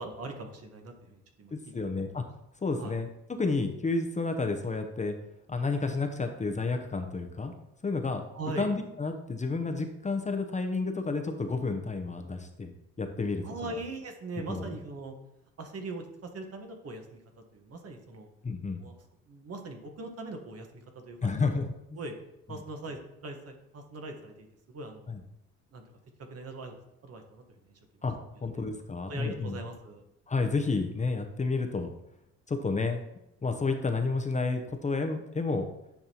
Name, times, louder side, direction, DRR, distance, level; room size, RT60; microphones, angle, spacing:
voice 1, 0.0-2.1 2.8-2.9 8.3-8.7 13.4-15.1 15.6-18.3 18.8-19.0 19.3-21.3 21.9-22.1 22.5-25.1 25.7-25.8 26.3-28.0 28.3-28.6 29.1-30.0, right 2 dB, 50° right, 4 dB, 1.3 m, -41 dB
voice 2, 1.5-2.2 2.6-3.1 3.4-5.1 5.5-7.5 7.8-8.3 8.6-12.7 13.0-13.8 14.5-14.7 18.4-18.8 21.2-21.7 25.1-25.2 28.0-29.6 30.3-31.9 32.5-33.0 33.4-35.7, left 3 dB, 25° left, 5 dB, 0.7 m, -30 dB
9.4 x 5.4 x 2.9 m, 0.84 s
cardioid pair, 90°, 30 cm